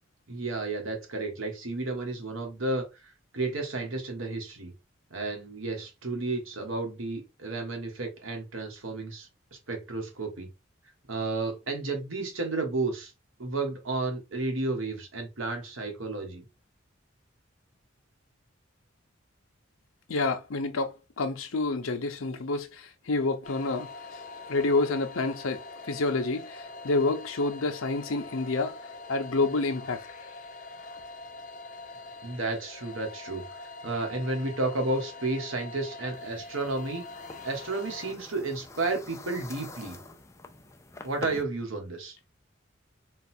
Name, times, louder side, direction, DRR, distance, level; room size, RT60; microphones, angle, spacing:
voice 1, 0.3-4.7 5.1-9.3 9.7-10.5 11.1-13.1 13.4-16.4 32.2-37.1 37.4-40.0 41.0-42.2, right 3 dB, 85° right, 1.5 m, -32 dB
voice 2, 20.1-24.2 24.5-28.8 29.1-30.0, left 3 dB, 85° left, 0.7 m, -28 dB
sound 1, 23.4-38.1, left 3 dB, 40° left, 0.8 m, -44 dB
sound 2, 36.1-41.4, left 2 dB, 15° left, 0.5 m, -46 dB
3.8 x 2.4 x 4.3 m
head